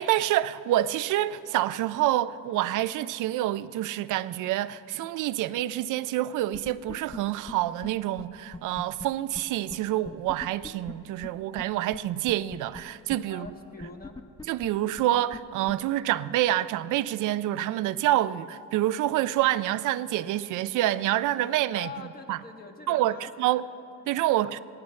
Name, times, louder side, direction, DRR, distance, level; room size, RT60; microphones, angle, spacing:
voice 1, 0.0-13.5 14.5-21.9 22.3-22.4 22.9-23.6 24.1-24.6, right 14 dB, 85° right, 0.5 m, -27 dB
sound 1, 6.5-7.2 7.5-7.6 7.8-7.9 8.2-8.3 8.5-9.1 9.3-9.4 9.7-9.8 10.0-10.9 11.2-11.3 11.6-11.7 11.9-12.0 12.3-12.8 13.1-13.2 13.4-13.5 13.8-14.7 15.0-15.1 15.3-15.4 15.7-15.8, left 2 dB, 15° left, 0.6 m, -39 dB
voice 2, 13.3-14.2 21.7-24.6, left 4 dB, 30° left, 1.6 m, -45 dB
19.5 x 16.5 x 3.2 m
cardioid pair, 90°, 30 cm